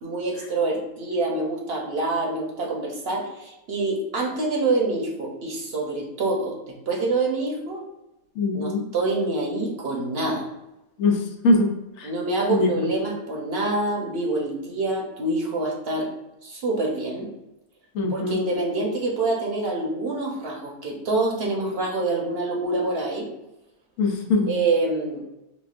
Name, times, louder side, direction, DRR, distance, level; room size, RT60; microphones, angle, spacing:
voice 1, 0.0-7.8 8.5-10.4 12.0-16.1 16.4-17.3 18.1-23.3 24.5-25.2, right 2 dB, 55° right, -1 dB, 0.9 m, -26 dB
voice 2, 8.4-8.8 11.0-11.7 12.0-12.1 12.5-12.7 17.9-18.4 24.0-24.5, left 2 dB, 80° left, 2 dB, 1.1 m, -22 dB
4.9 x 2.3 x 2.4 m, 0.92 s
omnidirectional pair, 1.4 m